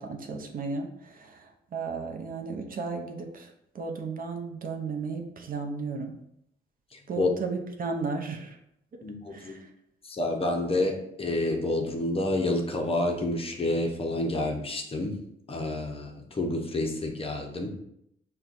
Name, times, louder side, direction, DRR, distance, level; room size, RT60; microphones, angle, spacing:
voice 1, 0.0-3.5 3.7-6.1 7.1-8.6 9.3-9.7, right 4 dB, 45° right, 3 dB, 0.6 m, -34 dB
voice 2, 9.0-9.6 10.0-15.2 15.5-17.7, left 2 dB, 30° left, 2 dB, 0.6 m, -29 dB
5.5 x 2.2 x 2.5 m, 0.76 s
cardioid pair, 90°, 20 cm